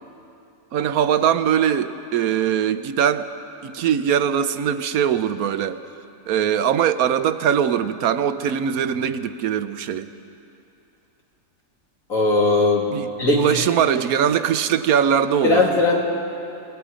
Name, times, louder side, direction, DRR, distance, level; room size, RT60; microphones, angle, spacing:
voice 1, 0.7-3.3 3.6-5.8 6.3-10.1 12.9-13.1 13.3-15.6, right 8 dB, 90° right, 12 dB, 1.2 m, -21 dB
voice 2, 12.1-13.4 15.4-16.0, left 3 dB, 70° left, -2 dB, 3.3 m, -19 dB
27.5 x 19.5 x 5.1 m, 2.7 s
omnidirectional pair, 1.5 m